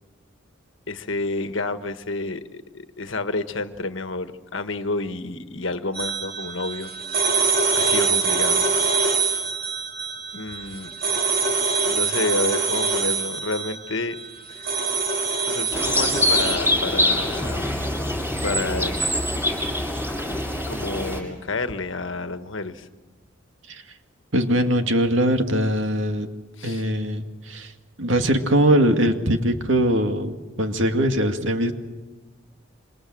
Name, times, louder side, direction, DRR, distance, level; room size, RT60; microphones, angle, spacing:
voice 1, 0.9-6.9 7.2-8.7 10.3-10.9 11.9-14.2 14.5-14.7 15.5-17.7 18.4-18.9 20.2-22.9 26.6-26.9, left 2 dB, 70° left, 9 dB, 1.4 m, -30 dB
sound 1, 5.9-16.6, right 4 dB, 45° right, 2.8 m, -24 dB
sound 2, 15.7-21.2, left 1 dB, 10° right, 6.6 m, -24 dB
sound 3, 17.4-21.9, left 1 dB, 10° left, 1.8 m, -36 dB
voice 2, 24.3-26.3 26.6-27.7 28.0-31.7, right 1 dB, 70° right, 5 dB, 2.3 m, -21 dB
27.0 x 26.5 x 7.7 m, 1.2 s
head